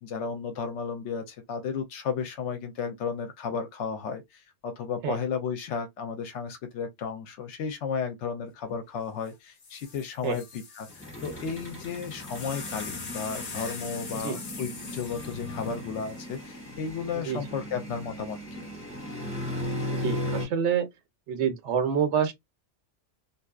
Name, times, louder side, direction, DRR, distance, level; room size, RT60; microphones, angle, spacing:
voice 1, 0.0-18.7, left 6 dB, 80° left, 0.9 m, -34 dB
sound 1, 9.2-9.3 9.6-17.0 17.9-18.3, left 4 dB, 45° left, 0.8 m, -43 dB
sound 2, 10.9-20.5, left 1 dB, 10° left, 1.1 m, -37 dB
voice 2, 19.9-20.9 21.3-22.3, right 7 dB, 80° right, 0.9 m, -27 dB
2.6 x 2.3 x 2.3 m
omnidirectional pair, 1.2 m